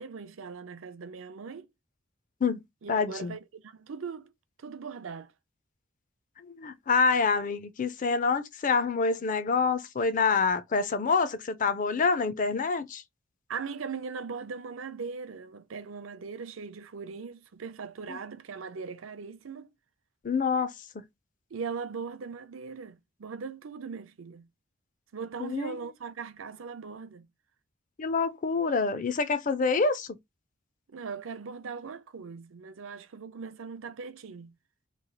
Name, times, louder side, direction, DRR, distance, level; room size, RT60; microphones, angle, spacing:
voice 1, 0.0-1.7 2.8-4.3 4.6-5.3 13.5-19.7 21.5-24.5 25.1-27.3 30.9-34.6, right 5 dB, 85° right, 0.6 m, -39 dB
voice 2, 2.9-3.4 6.6-13.0 20.2-21.0 25.4-25.8 28.0-30.2, left 4 dB, 40° left, 0.5 m, -27 dB
3.1 x 2.3 x 3.9 m
head